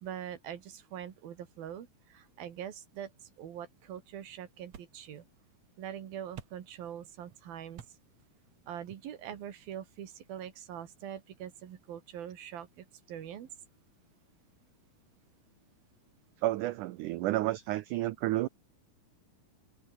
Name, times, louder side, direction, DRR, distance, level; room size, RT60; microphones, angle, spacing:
voice 1, 0.0-5.3 5.8-7.8 8.7-13.5, right 10 dB, 70° right, 3.8 m, -43 dB
sound 1, 3.0-10.1, right 9 dB, 50° right, 2.7 m, -57 dB
voice 2, 16.4-18.5, right 16 dB, 90° right, 1.7 m, -31 dB
omnidirectional pair, 4.5 m